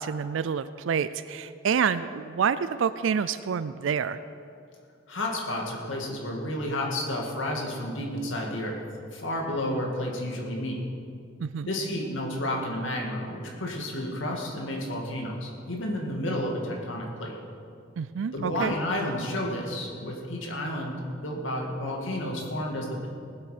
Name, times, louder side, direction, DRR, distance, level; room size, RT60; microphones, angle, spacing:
voice 1, 0.0-4.2 11.4-11.7 18.0-18.7, right 7 dB, 70° right, 14 dB, 0.4 m, -28 dB
voice 2, 5.1-8.8 9.1-10.8 11.7-17.4 18.3-23.1, left 1 dB, 70° left, 0 dB, 2.2 m, -31 dB
19.0 x 8.0 x 5.1 m, 2.4 s
head